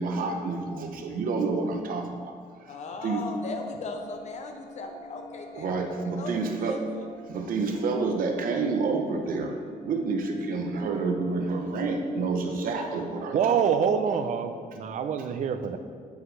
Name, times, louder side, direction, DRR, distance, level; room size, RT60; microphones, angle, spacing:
voice 1, 0.0-2.4 2.7-2.8 3.0-3.3 5.6-6.9 7.3-9.6 9.8-13.6, right 4 dB, 75° right, 4 dB, 0.9 m, -29 dB
voice 2, 2.7-7.0, left 3 dB, 50° left, 4 dB, 0.6 m, -38 dB
sound 1, 3.5-11.5, left 1 dB, 35° left, 2.3 m, -47 dB
voice 3, 13.3-15.8, right 7 dB, 55° right, 8 dB, 0.6 m, -26 dB
9.6 x 8.5 x 3.3 m, 2.1 s
wide cardioid pair, 180°, 15 cm